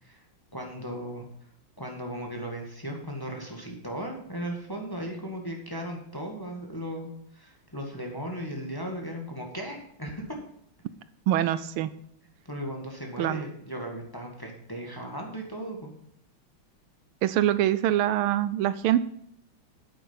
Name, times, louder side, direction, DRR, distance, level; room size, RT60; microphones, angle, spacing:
voice 1, 0.5-1.3 1.8-10.2 12.5-15.9, equal, 10° left, 1 dB, 1.6 m, -36 dB
voice 2, 11.3-11.9 13.2-13.4 17.2-19.1, right 12 dB, 80° right, 15 dB, 1.4 m, -24 dB
9.0 x 8.9 x 5.6 m, 0.69 s
omnidirectional pair, 2.4 m